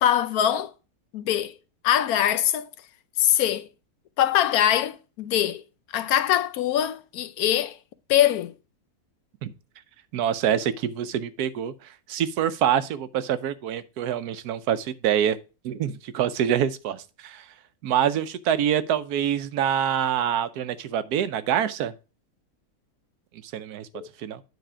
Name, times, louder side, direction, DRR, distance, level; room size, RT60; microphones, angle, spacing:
voice 1, 0.0-0.7 1.1-1.5 1.8-2.7 3.2-3.7 4.2-5.6 5.9-7.8 8.1-8.5 23.9-24.1, left 11 dB, 75° left, 1.1 m, -22 dB
voice 2, 10.1-15.4 15.6-17.5 17.8-21.9 23.4-23.9 24.2-24.4, right 9 dB, 80° right, 1.2 m, -26 dB
9.4 x 4.1 x 4.9 m
omnidirectional pair, 1.6 m